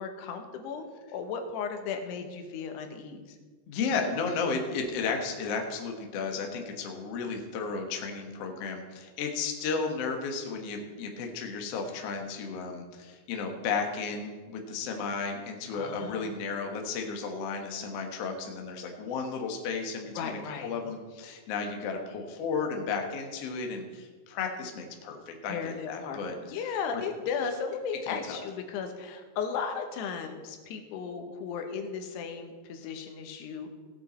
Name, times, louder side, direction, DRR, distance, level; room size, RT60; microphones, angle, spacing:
voice 1, 0.0-3.3 15.7-16.3 20.2-20.7 25.5-33.7, left 6 dB, 85° left, 6 dB, 3.2 m, -35 dB
voice 2, 3.7-26.4 28.0-28.4, left 5 dB, 60° left, 3 dB, 1.6 m, -33 dB
17.5 x 8.0 x 4.3 m, 1.5 s
omnidirectional pair, 4.6 m